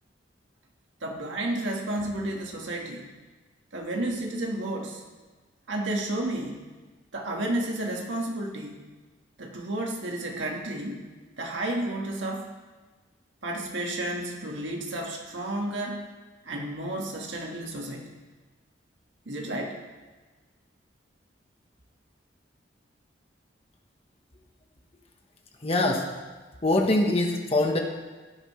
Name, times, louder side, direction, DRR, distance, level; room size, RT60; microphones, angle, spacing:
voice 1, 1.0-3.1 3.7-5.0 5.7-6.6 7.1-8.8 9.4-11.1 11.4-12.5 13.4-16.1 16.4-18.1 19.2-19.8, right 1 dB, 80° right, 0 dB, 1.6 m, -31 dB
voice 2, 25.6-26.1 26.6-27.8, left 2 dB, 30° left, 2 dB, 1.2 m, -23 dB
15.0 x 11.5 x 3.2 m, 1.3 s
head